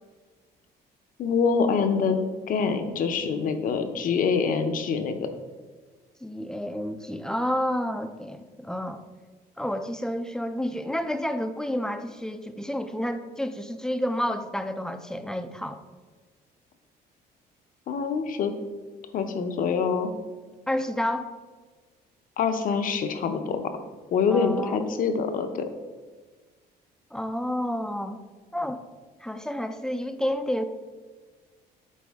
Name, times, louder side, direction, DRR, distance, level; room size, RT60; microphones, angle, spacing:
voice 1, 1.2-2.2 2.5-5.3 17.9-18.5 19.1-20.1 22.4-23.7 24.1-25.7, left 5 dB, 55° left, 7 dB, 0.7 m, -25 dB
voice 2, 6.2-9.0 9.6-15.8 20.7-21.3 24.3-24.8 27.1-28.2 28.5-28.8 29.2-30.6, equal, 5° left, 8 dB, 0.4 m, -30 dB
8.5 x 4.2 x 3.5 m, 1.4 s
cardioid pair, 110°, 17 cm